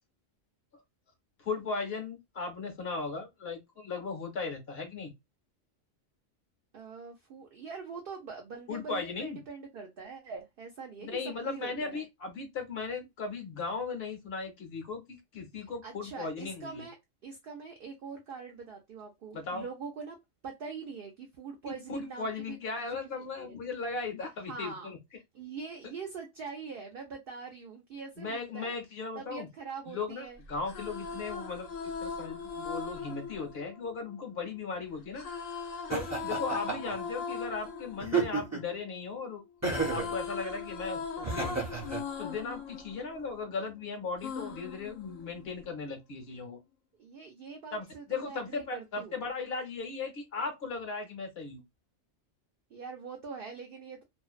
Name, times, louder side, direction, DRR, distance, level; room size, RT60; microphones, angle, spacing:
voice 1, 1.4-5.1 8.7-9.4 11.0-16.8 19.3-19.6 21.7-25.0 28.2-29.5 29.9-35.3 35.9-39.4 39.9-41.6 42.2-46.6 47.7-51.6, left 4 dB, 60° left, 1.0 m, -37 dB
voice 2, 6.7-12.0 15.6-17.0 17.2-20.2 20.4-22.6 22.9-23.6 24.5-24.9 25.3-28.8 29.1-30.4 47.0-49.2 52.7-54.0, right 5 dB, 60° right, 0.6 m, -43 dB
sound 1, 30.5-34.6 35.1-39.2 39.5-43.7 44.2-45.7, left 5 dB, 85° left, 1.0 m, -40 dB
Laughter, 35.9-37.0 38.0-38.7 39.6-40.1 41.2-42.0, right 4 dB, 20° right, 0.5 m, -31 dB
2.5 x 2.1 x 2.3 m
omnidirectional pair, 1.3 m